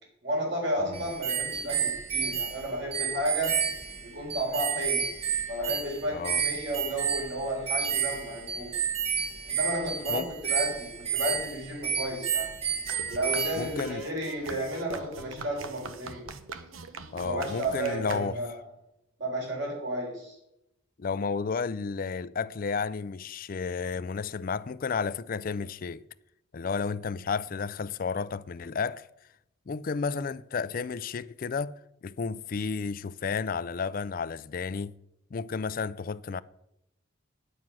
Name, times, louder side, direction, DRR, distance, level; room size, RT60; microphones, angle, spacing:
voice 1, 0.2-3.6 4.0-5.1 5.5-8.7 9.5-12.5 13.1-16.2 17.2-18.6 19.2-20.4, right 1 dB, 60° right, 4.0 m, -32 dB
sound 1, 0.9-13.9, right 7 dB, 30° right, 1.0 m, -31 dB
voice 2, 6.1-6.4 10.1-10.3 13.6-14.1 17.1-18.4 21.0-26.1 26.5-29.1 29.7-35.0 35.3-36.4, left 5 dB, 45° left, 0.4 m, -32 dB
sound 2, 12.9-18.7, right 4 dB, 85° right, 0.9 m, -42 dB
9.5 x 9.0 x 6.1 m
head